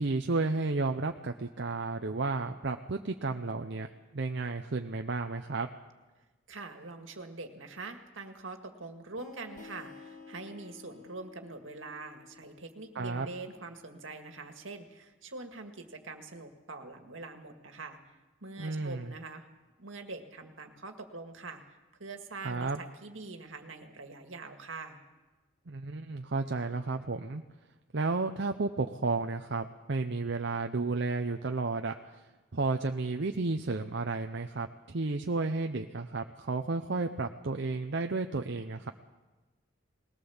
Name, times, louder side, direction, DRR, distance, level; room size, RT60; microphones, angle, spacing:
voice 1, 0.0-3.9 4.1-5.7 12.9-13.4 18.6-19.1 22.4-22.8 25.7-27.4 27.9-32.0 32.5-38.9, right 3 dB, 60° right, 5 dB, 0.8 m, -32 dB
voice 2, 6.5-19.5 19.8-25.0, right 3 dB, 75° right, 5 dB, 1.9 m, -44 dB
sound 1, 9.2-14.5, left 4 dB, 40° left, 1.9 m, -53 dB
20.5 x 18.0 x 7.2 m, 1.2 s
head